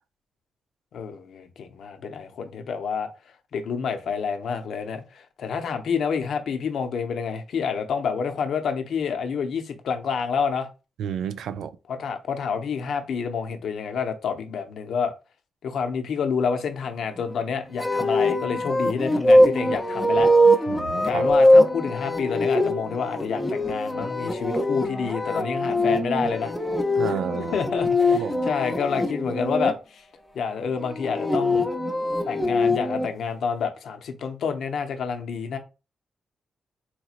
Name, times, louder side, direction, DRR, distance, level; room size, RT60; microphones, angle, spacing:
voice 1, 0.9-3.1 3.5-10.7 11.9-15.1 15.6-20.6 21.0-26.5 27.4-30.0 30.3-31.7 32.3-35.6, left 6 dB, 80° left, 0.6 m, -28 dB
voice 2, 11.0-11.7 20.7-21.3 26.9-27.6 28.1-28.5, right 8 dB, 90° right, 0.3 m, -31 dB
sound 1, 17.8-29.7 30.8-33.1, left 1 dB, 5° left, 0.6 m, -22 dB
3.9 x 2.9 x 2.4 m
cardioid pair, 90°, 0 cm